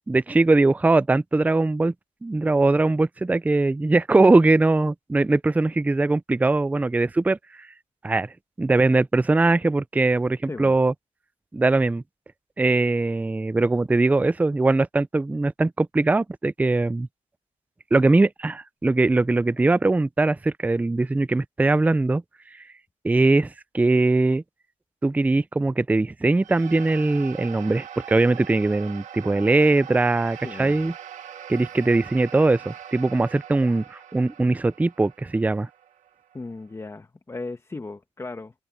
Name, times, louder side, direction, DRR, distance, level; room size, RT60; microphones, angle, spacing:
voice 1, 0.1-1.9 2.2-7.4 8.0-10.9 11.5-12.0 12.6-17.1 17.9-22.2 22.5-22.7 23.0-24.4 25.0-30.9 31.5-35.7, right 2 dB, 10° right, 0.5 m, -21 dB
sound 1, 26.3-36.9, right 9 dB, 70° right, 2.1 m, -42 dB
voice 2, 30.4-30.7 36.3-38.5, left 3 dB, 20° left, 2.1 m, -36 dB
open air
cardioid pair, 110°, 13 cm